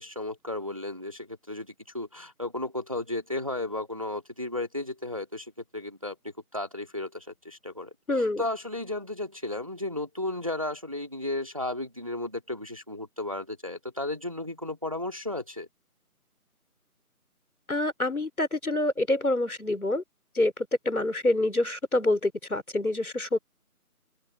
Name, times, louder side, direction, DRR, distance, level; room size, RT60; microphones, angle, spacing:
voice 1, 0.0-6.2 6.5-7.9 8.4-15.7, left 2 dB, 20° right, 2.1 m, -34 dB
voice 2, 8.1-8.4 17.7-20.0 20.3-23.4, left 2 dB, 70° left, 4.4 m, -26 dB
open air
figure-of-eight pair, 180°, 45 cm